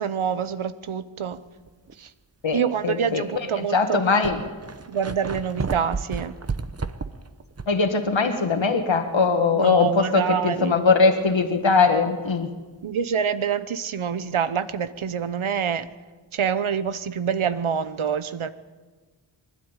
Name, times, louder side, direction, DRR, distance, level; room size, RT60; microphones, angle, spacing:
voice 1, 0.0-1.4 2.0-2.1 2.5-4.3 4.9-6.3 9.5-10.7 12.8-15.9 16.3-18.5, right 7 dB, 85° right, 14 dB, 1.0 m, -26 dB
sound 1, 1.7-1.9 2.6-2.7 3.6-3.7 3.9-7.9 8.2-8.3 11.9-12.0, right 4 dB, 30° right, 1.0 m, -32 dB
voice 2, 2.4-3.2 3.5-4.4 7.7-12.5, left 4 dB, 70° left, 6 dB, 1.7 m, -21 dB
24.0 x 12.5 x 9.1 m, 1.3 s
wide cardioid pair, 85°, 48 cm